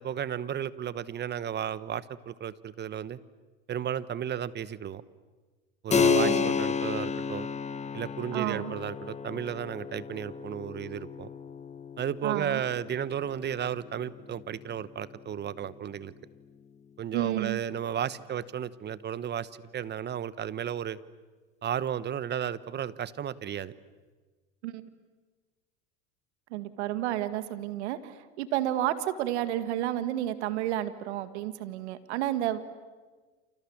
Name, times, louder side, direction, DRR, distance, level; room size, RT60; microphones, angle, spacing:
voice 1, 0.0-3.2 3.7-5.0 5.8-7.5 7.9-11.3 12.0-16.1 17.0-21.0 21.6-23.7, right 9 dB, 30° right, 17 dB, 1.1 m, -34 dB
Keyboard (musical), 5.9-16.1, left 6 dB, 20° left, 1.3 m, -32 dB
voice 2, 5.9-6.6 8.3-8.7 12.2-12.6 17.1-17.6 24.6-24.8 26.5-32.6, right 13 dB, 85° right, 12 dB, 2.0 m, -31 dB
29.0 x 28.0 x 7.3 m, 1.3 s
supercardioid pair, 110°, 33 cm